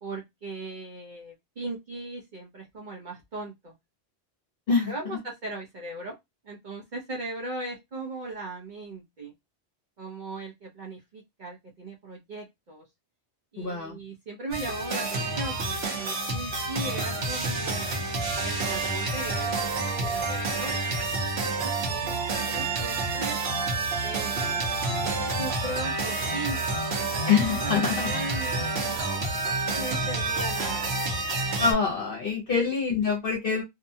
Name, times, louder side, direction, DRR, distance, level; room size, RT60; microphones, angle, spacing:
voice 1, 0.0-3.7 4.9-6.2 6.4-9.3 10.0-12.8 13.5-18.0 18.4-19.5 20.0-20.8 21.4-23.4 24.0-24.7 25.0-29.0 29.8-31.0 32.5-32.6, right 2 dB, 50° right, -1 dB, 0.8 m, -38 dB
voice 2, 13.6-14.0 27.3-28.1 31.6-33.6, left 5 dB, 55° left, -1 dB, 0.9 m, -25 dB
sound 1, 14.5-31.7, right 3 dB, 65° right, 1.0 m, -29 dB
2.7 x 2.2 x 2.6 m, 0.18 s
omnidirectional pair, 1.2 m